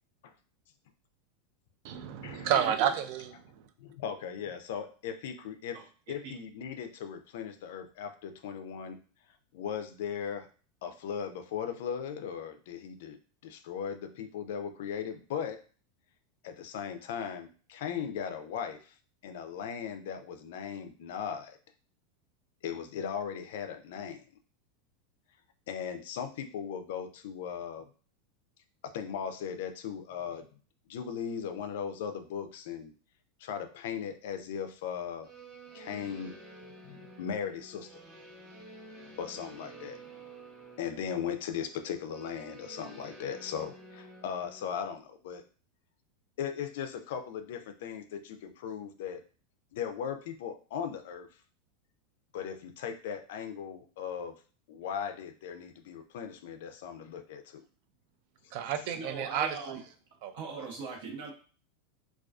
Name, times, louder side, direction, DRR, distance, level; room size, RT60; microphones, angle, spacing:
voice 1, 1.8-3.4 58.5-59.8 60.2-60.3 60.6-60.7, right 9 dB, 60° right, 8 dB, 0.3 m, -30 dB
voice 2, 2.5-2.9 5.7-5.8 6.2-6.3 58.9-59.8 60.3-61.3, right 4 dB, 75° right, 0 dB, 0.9 m, -40 dB
voice 3, 3.8-9.0 9.5-10.5 10.8-15.6 16.4-18.9 19.2-21.6 22.6-24.2 25.7-27.9 28.8-30.5 30.9-32.9 33.4-35.3 35.7-36.4 36.8-38.0 39.2-40.0 40.8-45.4 46.4-49.2 49.7-51.3 52.3-54.3 54.7-57.6, left 8 dB, 70° left, 9 dB, 0.3 m, -38 dB
sound 1, 35.2-44.7, right 2 dB, 30° right, 0.7 m, -50 dB
2.4 x 2.3 x 2.3 m, 0.39 s
supercardioid pair, 130°, 0 cm